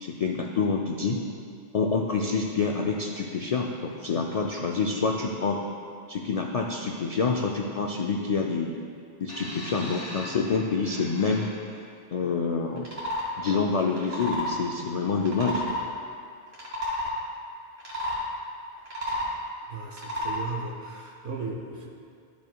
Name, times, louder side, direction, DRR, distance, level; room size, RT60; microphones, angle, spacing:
voice 1, 0.0-1.2 1.7-5.6 6.1-8.8 9.2-11.5 12.1-12.9 13.4-15.6, left 4 dB, 65° left, 0 dB, 0.3 m, -27 dB
sound 1, 9.3-11.8 12.8-12.9, equal, 85° left, 2.1 m, -41 dB
sound 2, 12.8-13.3 13.9-14.6 15.2-15.8 16.5-17.1 17.8-18.2 18.8-19.4 19.9-20.4, left 1 dB, 60° right, 1.9 m, -30 dB
voice 2, 19.7-21.9, right 4 dB, 80° right, 0 dB, 1.3 m, -36 dB
12.0 x 6.8 x 2.3 m, 2.3 s
omnidirectional pair, 1.2 m